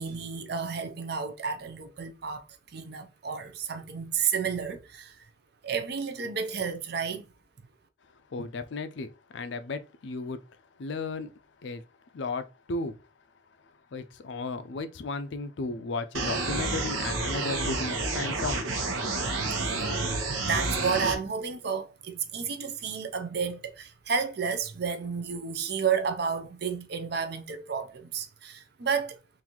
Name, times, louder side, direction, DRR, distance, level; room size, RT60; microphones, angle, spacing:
voice 1, 0.0-2.4 2.7-5.2 5.6-7.3 19.4-29.2, right 6 dB, 50° right, 0.5 m, -31 dB
voice 2, 8.3-10.4 10.8-11.3 11.6-11.8 12.1-13.0 13.9-18.7, left 3 dB, 60° left, 0.4 m, -34 dB
sound 1, 16.1-21.1, right 3 dB, 90° right, 1.0 m, -30 dB
3.8 x 2.6 x 2.9 m
head